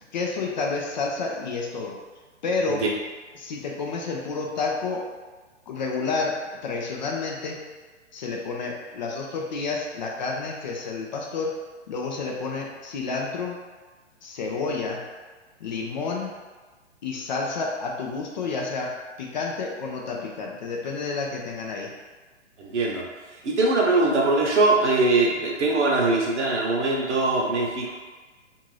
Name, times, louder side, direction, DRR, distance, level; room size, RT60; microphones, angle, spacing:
voice 1, 0.1-1.9 2.4-2.8 3.4-5.0 5.7-7.7 8.1-11.5 11.9-13.6 14.2-15.0 15.6-16.3 17.0-18.9 19.2-21.9, left 4 dB, 40° left, -1 dB, 0.4 m, -30 dB
voice 2, 22.6-23.0 23.4-27.9, right 2 dB, 65° right, -2 dB, 0.9 m, -22 dB
2.6 x 2.5 x 3.2 m, 1.3 s
hypercardioid pair, 125°, 37 cm